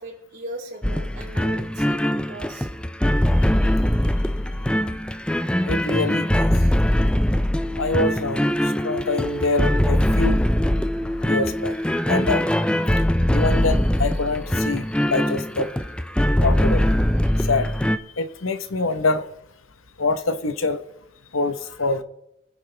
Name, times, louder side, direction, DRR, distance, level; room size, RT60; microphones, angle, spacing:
voice 1, 0.0-2.7, right 1 dB, 60° right, 4.8 m, -38 dB
sound 1, 0.8-18.0, equal, 5° left, 0.4 m, -22 dB
voice 2, 5.7-6.5 7.8-10.4 11.2-11.8 12.1-12.5 13.3-15.7 16.4-17.0 17.4-17.7 18.2-19.3 20.0-20.8 21.3-22.0, left 3 dB, 90° left, 1.1 m, -25 dB
24.0 x 9.9 x 3.4 m
head